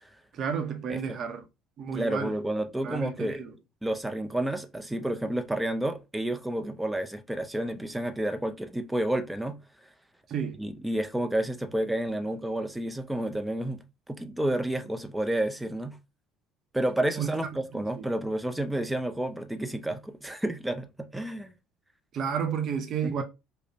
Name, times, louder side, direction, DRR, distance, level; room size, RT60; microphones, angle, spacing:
voice 1, 0.3-1.4 1.8-2.3 2.8-3.5 10.3-10.6 17.2-17.3 17.7-18.1 22.1-23.2, right 7 dB, 45° right, 0.6 m, -31 dB
voice 2, 1.9-3.4 3.8-9.6 10.6-13.8 14.1-16.0 16.7-21.5 23.0-23.2, right 1 dB, 5° right, 0.5 m, -30 dB
5.0 x 2.0 x 2.6 m
cardioid pair, 125°, 0 cm